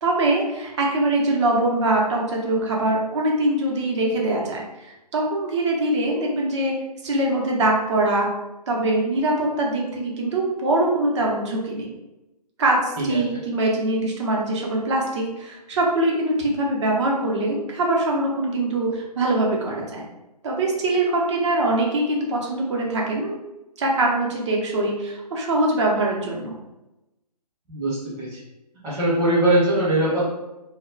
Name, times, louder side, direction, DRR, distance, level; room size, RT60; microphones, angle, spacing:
voice 1, 0.0-6.7 7.0-8.3 8.7-11.9 12.6-20.0 20.4-23.4 23.8-26.6, right 2 dB, 45° right, -1 dB, 0.7 m, -23 dB
voice 2, 27.7-28.4 28.8-30.3, right 1 dB, 15° right, -8 dB, 0.9 m, -21 dB
2.2 x 2.1 x 3.7 m, 0.97 s
figure-of-eight pair, 140°, 21 cm